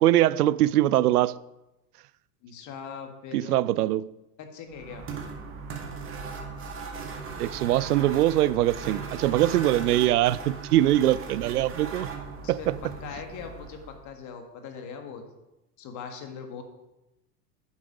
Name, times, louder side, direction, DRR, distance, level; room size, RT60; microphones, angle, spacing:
voice 1, 0.0-1.4 3.3-4.1 7.4-12.1 12.5-12.7, right 14 dB, 75° right, 0.5 m, -22 dB
voice 2, 2.4-3.7 4.4-5.1 12.4-12.7 13.0-15.2 15.8-16.6, left 6 dB, 40° left, 1.7 m, -40 dB
sound 1, 4.7-14.1, right 4 dB, 25° right, 1.8 m, -38 dB
9.5 x 7.4 x 5.0 m
hypercardioid pair, 90°, 47 cm